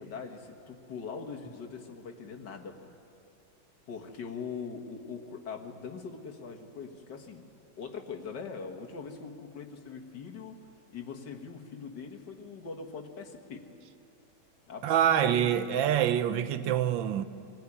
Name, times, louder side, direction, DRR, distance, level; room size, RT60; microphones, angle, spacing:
voice 1, 0.0-2.9 3.9-7.4 7.8-10.6 10.9-13.6 14.7-15.5, left 5 dB, 60° left, 2.0 m, -41 dB
voice 2, 14.8-17.2, right 10 dB, 75° right, 1.4 m, -26 dB
23.0 x 16.5 x 9.9 m
omnidirectional pair, 2.2 m